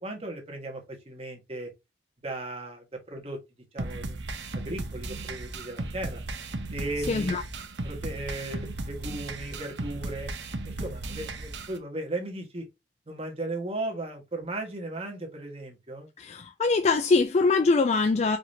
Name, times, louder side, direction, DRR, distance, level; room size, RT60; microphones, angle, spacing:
voice 1, 0.0-1.7 2.2-3.4 3.7-4.2 4.5-6.2 6.7-7.3 7.8-10.3 10.6-12.7 13.1-16.1, right 2 dB, 35° right, 1.5 m, -36 dB
sound 1, 3.8-11.8, right 2 dB, 75° right, 0.8 m, -36 dB
voice 2, 7.1-7.4 16.2-18.4, left 3 dB, 35° left, 0.4 m, -23 dB
4.9 x 3.0 x 2.5 m
head